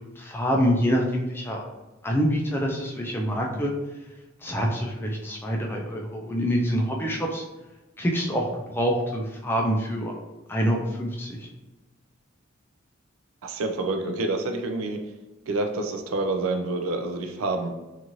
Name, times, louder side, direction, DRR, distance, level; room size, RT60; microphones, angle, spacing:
voice 1, 0.2-1.6 2.0-3.7 4.4-7.4 8.0-8.5 8.7-10.1 10.5-11.4, equal, 10° left, 0 dB, 0.3 m, -26 dB
voice 2, 13.4-15.0 15.5-17.7, right 2 dB, 85° right, 5 dB, 0.4 m, -27 dB
2.6 x 2.4 x 3.0 m, 1.1 s
head